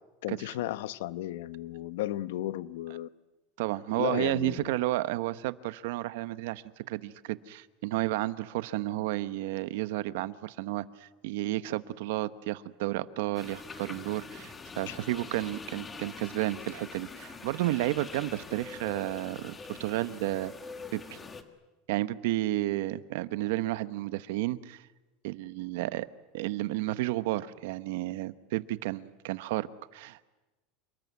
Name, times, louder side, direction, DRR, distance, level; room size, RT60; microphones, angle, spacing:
voice 1, 0.2-3.1 4.0-4.6 14.9-15.0, left 14 dB, 80° left, 0.9 m, -34 dB
voice 2, 3.6-20.5 20.9-21.2 21.9-24.9 25.2-26.1 26.3-30.3, right 16 dB, 70° right, 1.0 m, -32 dB
sound 1, 13.3-21.4, left 4 dB, 15° left, 1.5 m, -44 dB
28.5 x 20.5 x 9.5 m
supercardioid pair, 170°, 0 cm